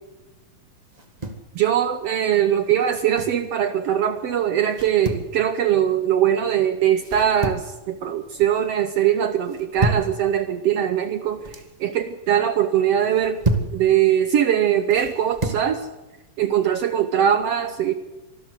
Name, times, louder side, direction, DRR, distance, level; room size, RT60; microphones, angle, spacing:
sound 1, 0.9-1.5 2.8-3.4 4.7-5.3 7.0-7.8 8.1-8.6 9.5-10.1 11.2-11.7 13.0-13.8 14.9-15.7, right 2 dB, 40° right, 0.5 m, -28 dB
voice 1, 1.5-11.5 11.8-13.4 13.7-15.9 16.4-17.9, right 10 dB, 80° right, 9 dB, 1.4 m, -21 dB
24.5 x 13.5 x 8.2 m, 1.0 s
omnidirectional pair, 4.0 m